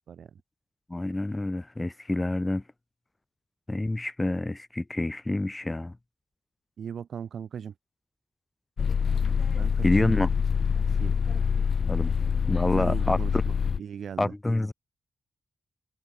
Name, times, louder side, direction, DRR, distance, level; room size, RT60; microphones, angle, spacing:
voice 1, 0.9-2.6 3.7-5.9 9.8-10.3 11.8-12.1 12.5-13.2 14.2-14.7, left 2 dB, 15° left, 0.4 m, -27 dB
voice 2, 6.8-7.7 9.5-10.1 11.0-11.1 12.6-14.3, right 8 dB, 70° right, 1.4 m, -38 dB
sound 1, 8.8-13.8, left 6 dB, 55° left, 1.4 m, -25 dB
wide cardioid pair, 155°, 0 cm